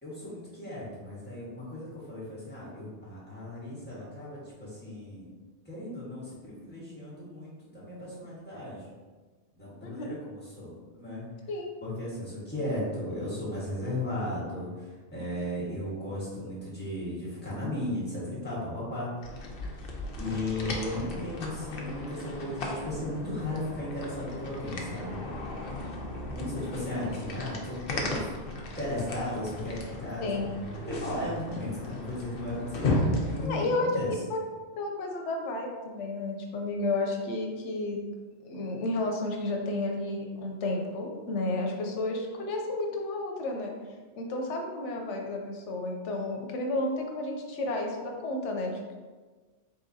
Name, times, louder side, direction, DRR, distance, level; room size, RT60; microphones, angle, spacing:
voice 1, 0.0-5.2 5.6-8.9 9.5-11.3 11.8-19.1 20.2-25.2 26.3-28.2 28.8-30.2 30.9-34.1, left 1 dB, 10° left, -9 dB, 1.4 m, -36 dB
sound 1, 19.2-33.5, left 2 dB, 60° left, 0.8 m, -35 dB
voice 2, 33.4-33.9 34.3-34.4 34.8-38.0 38.5-43.7 44.2-49.1, left 2 dB, 85° left, 1 dB, 1.0 m, -32 dB
3.9 x 3.9 x 2.7 m, 1.4 s
omnidirectional pair, 1.2 m